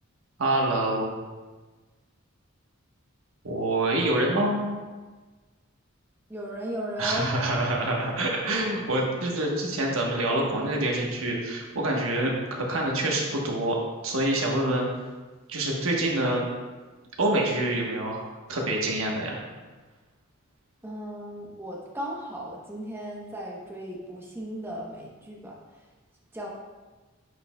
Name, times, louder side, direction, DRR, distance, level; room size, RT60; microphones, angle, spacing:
voice 1, 0.4-1.1 3.4-4.8 7.0-12.3 12.7-13.8 14.0-14.9 15.5-16.5 17.2-19.4, right 1 dB, 85° right, -1 dB, 1.2 m, -26 dB
voice 2, 6.3-7.3 20.8-25.6 26.3-26.5, equal, 10° right, -3 dB, 0.9 m, -36 dB
9.4 x 5.1 x 2.2 m, 1.3 s
head